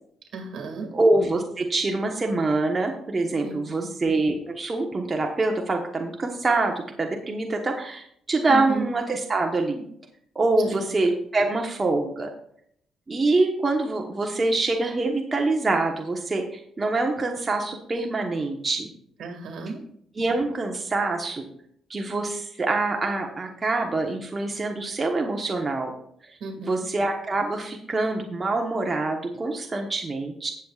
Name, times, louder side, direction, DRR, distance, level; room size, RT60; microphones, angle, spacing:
voice 1, 0.3-0.9 3.4-3.9 8.5-8.9 10.6-10.9 19.2-19.8 26.4-26.9, right 4 dB, 70° right, 4 dB, 2.1 m, -34 dB
voice 2, 0.9-9.9 10.3-12.3 13.1-18.9 20.1-21.5 21.9-25.9 26.6-30.5, right 2 dB, 30° right, 2 dB, 1.2 m, -25 dB
17.0 x 7.2 x 2.5 m, 0.70 s
cardioid pair, 90°, 0 cm